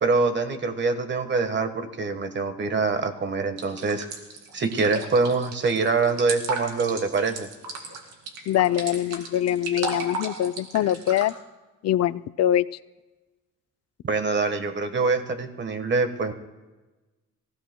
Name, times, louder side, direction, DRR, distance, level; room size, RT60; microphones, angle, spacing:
voice 1, 0.0-4.1 4.5-7.5 14.0-16.3, right 4 dB, 35° right, 8 dB, 1.4 m, -24 dB
sound 1, 3.6-11.3, right 3 dB, 85° right, 2.4 m, -34 dB
voice 2, 8.5-11.3 11.8-12.6, left 12 dB, 55° left, 15 dB, 0.5 m, -23 dB
25.5 x 16.5 x 2.3 m, 1.2 s
cardioid pair, 90°, 30 cm